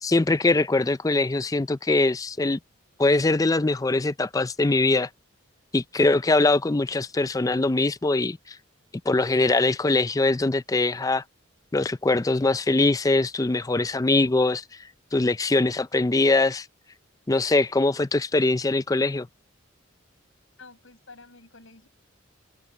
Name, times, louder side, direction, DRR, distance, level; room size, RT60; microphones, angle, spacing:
voice 1, 0.0-2.6 3.0-5.1 5.7-8.6 9.1-11.2 11.7-14.6 15.1-16.7 17.3-19.3, left 2 dB, 15° left, 0.4 m, -22 dB
voice 2, 20.6-21.9, left 3 dB, 75° left, 5.9 m, -49 dB
head